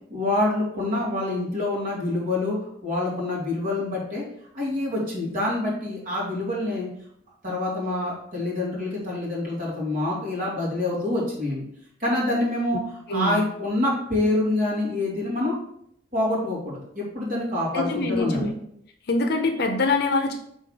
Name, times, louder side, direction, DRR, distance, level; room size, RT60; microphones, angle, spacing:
voice 1, 0.1-2.6 2.8-4.2 4.5-6.9 7.4-11.7 12.0-12.8 13.1-15.6 16.1-18.5, left 2 dB, 45° right, -5 dB, 2.4 m, -26 dB
voice 2, 13.1-13.4 17.7-18.5 19.1-20.4, left 2 dB, 60° left, 5 dB, 0.7 m, -24 dB
5.6 x 3.8 x 4.8 m, 0.70 s
head